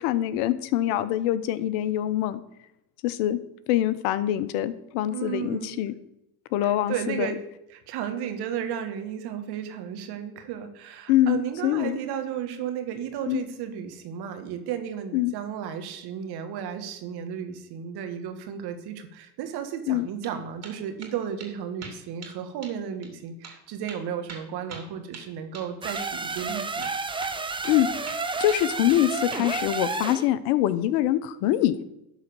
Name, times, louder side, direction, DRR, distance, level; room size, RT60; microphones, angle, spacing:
voice 1, 0.0-2.4 3.0-3.4 3.7-5.9 6.5-7.3 11.1-12.0 13.3-13.4 15.1-15.3 19.9-20.1 27.6-27.9 28.4-31.8, left 13 dB, 70° left, 15 dB, 0.9 m, -24 dB
voice 2, 5.1-5.8 6.6-7.4 7.7-26.9, right 9 dB, 60° right, 7 dB, 1.7 m, -34 dB
sound 1, 20.0-20.4 20.6-21.1 21.4-21.5 21.8-22.4 22.6-22.8 23.0-23.1 23.4-23.6 23.9-25.7 25.9-26.1 26.4-26.5 26.8-27.4 27.6-27.8 28.1-29.0 29.3-29.9, right 4 dB, 35° right, 2.6 m, -42 dB
sound 2, 25.8-30.3, right 3 dB, 10° right, 0.7 m, -31 dB
11.5 x 4.1 x 6.9 m, 0.87 s
hypercardioid pair, 80°, 44 cm